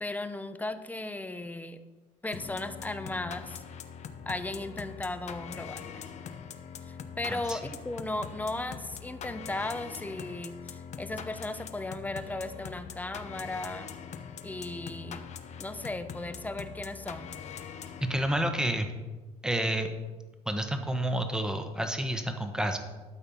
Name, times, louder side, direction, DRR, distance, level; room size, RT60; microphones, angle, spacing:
voice 1, 0.0-1.8 2.2-3.6 4.3-6.1 6.9-13.9 14.4-15.2 15.6-17.3, left 2 dB, 10° left, 10 dB, 0.7 m, -36 dB
sound 1, 2.3-18.6, left 7 dB, 50° left, 0.8 m, -43 dB
voice 2, 18.1-18.9 19.4-19.9 20.5-22.8, right 1 dB, 5° right, 6 dB, 1.1 m, -29 dB
12.5 x 4.3 x 7.1 m, 1.2 s
cardioid pair, 110°, 15 cm